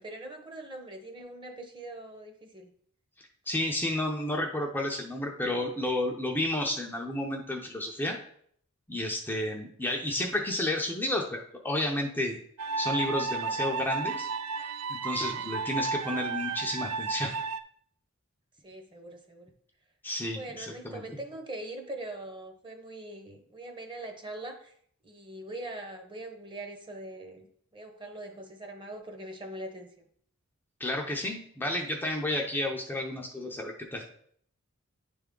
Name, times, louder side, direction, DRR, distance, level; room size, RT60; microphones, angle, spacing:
voice 1, 0.0-2.7 15.4-15.5 18.6-19.5 20.3-24.7 25.0-27.5 27.7-30.1, right 1 dB, 20° right, 4 dB, 0.8 m, -42 dB
voice 2, 3.5-8.2 8.9-12.4 12.8-14.3 14.9-17.3 20.0-21.0 30.8-34.0, left 1 dB, 10° left, 0 dB, 0.6 m, -31 dB
sound 1, 12.6-17.6, right 4 dB, 85° right, 0.4 m, -32 dB
9.9 x 3.5 x 3.7 m, 0.63 s
head